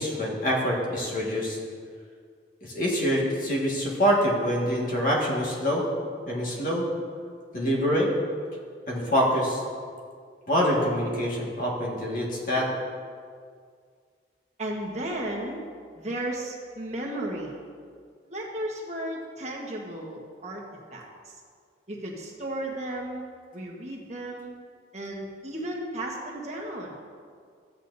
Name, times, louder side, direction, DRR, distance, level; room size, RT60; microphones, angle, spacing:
voice 1, 0.0-1.6 2.6-5.9 6.3-6.9 7.5-8.1 8.9-9.6 10.5-12.7, equal, 45° left, -3 dB, 1.8 m, -25 dB
voice 2, 14.6-15.6 16.0-17.6 18.3-20.6 20.9-21.3 21.9-23.2 23.5-24.5 24.9-27.0, right 1 dB, 40° right, -2 dB, 1.4 m, -34 dB
13.5 x 8.7 x 2.7 m, 2.1 s
head